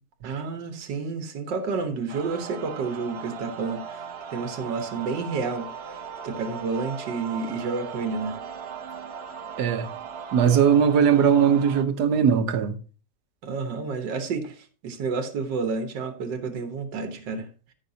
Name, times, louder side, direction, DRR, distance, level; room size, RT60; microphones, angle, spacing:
voice 1, 0.2-4.0 4.3-6.0 6.2-8.4 13.4-17.5, right 4 dB, 90° right, 1.8 m, -30 dB
sound 1, 2.1-11.8, right 7 dB, 45° right, 0.9 m, -38 dB
voice 2, 9.6-9.9 10.3-12.8, right 7 dB, 70° right, 1.5 m, -20 dB
14.0 x 6.0 x 2.8 m
omnidirectional pair, 1.8 m